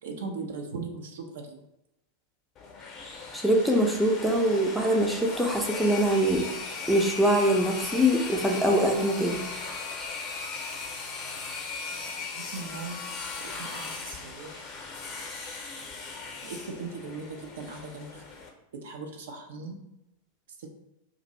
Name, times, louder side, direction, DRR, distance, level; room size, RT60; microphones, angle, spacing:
voice 1, 0.0-1.6 12.3-13.0 13.4-14.6 16.4-18.2 18.7-19.8 20.6-20.7, right 4 dB, 60° right, 2 dB, 0.5 m, -39 dB
sound 1, 2.6-18.5, left 4 dB, 30° left, 0.7 m, -38 dB
voice 2, 3.3-6.4 6.9-9.4, equal, ahead, 0 dB, 0.5 m, -23 dB
2.6 x 2.5 x 4.1 m, 0.88 s
figure-of-eight pair, 90°, 0 cm